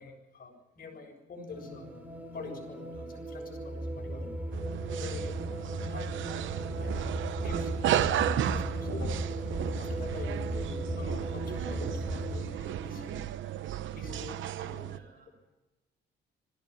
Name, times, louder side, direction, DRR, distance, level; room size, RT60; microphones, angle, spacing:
voice 1, 0.0-1.9 2.3-4.3 4.9-7.1 7.4-7.8 8.3-9.2 9.8-13.2 13.9-15.0, left 3 dB, 45° left, 3 dB, 6.9 m, -46 dB
sound 1, 1.5-12.5, equal, 10° right, 4.5 m, -36 dB
sound 2, 4.5-15.0, right 12 dB, 75° right, 0.9 m, -34 dB
voice 2, 14.8-15.5, right 5 dB, 45° right, 3 dB, 6.8 m, -60 dB
21.0 x 15.5 x 9.9 m, 1.1 s
cardioid pair, 90°, 20 cm